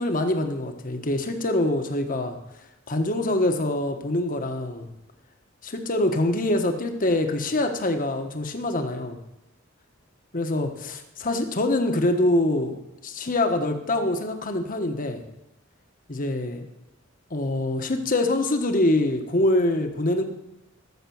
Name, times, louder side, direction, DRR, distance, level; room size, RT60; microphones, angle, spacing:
voice 1, 0.0-2.4 2.9-4.9 5.6-9.2 10.3-12.8 13.0-15.2 16.1-16.7 17.3-20.2, left 1 dB, 40° left, 6 dB, 1.3 m, -24 dB
14.0 x 7.2 x 7.1 m, 0.92 s
head